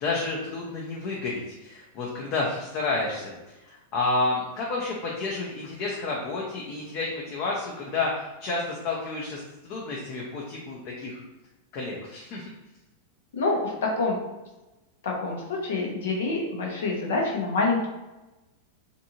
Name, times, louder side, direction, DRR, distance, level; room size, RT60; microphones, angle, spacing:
voice 1, 0.0-3.3 3.6-11.2 11.7-12.4, left 3 dB, 35° left, -3 dB, 0.5 m, -30 dB
voice 2, 13.3-14.2 15.0-17.9, left 3 dB, 85° left, 0 dB, 0.8 m, -26 dB
2.6 x 2.6 x 2.7 m, 1.1 s
supercardioid pair, 165°, 0 cm